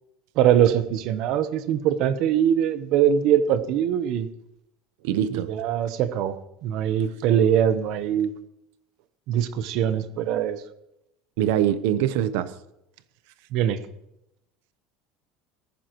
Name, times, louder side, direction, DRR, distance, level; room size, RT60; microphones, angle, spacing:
voice 1, 0.4-4.3 5.3-6.3 6.6-8.3 9.3-10.6 13.5-13.8, right 9 dB, 50° right, 12 dB, 1.0 m, -22 dB
voice 2, 5.0-5.5 11.4-12.5, right 10 dB, 75° right, 14 dB, 0.9 m, -23 dB
18.5 x 14.5 x 3.1 m, 0.84 s
cardioid pair, 175°, 0 cm